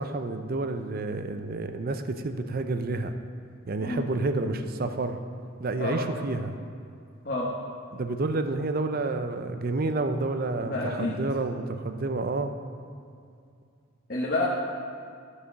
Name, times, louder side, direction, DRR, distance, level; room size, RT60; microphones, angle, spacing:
voice 1, 0.0-3.1 3.7-5.2 5.6-6.6 7.9-12.5, right 2 dB, 45° right, 8 dB, 0.5 m, -29 dB
voice 2, 10.6-11.2 14.1-14.5, left 2 dB, 45° left, -5 dB, 1.1 m, -28 dB
12.5 x 4.9 x 6.7 m, 2.3 s
head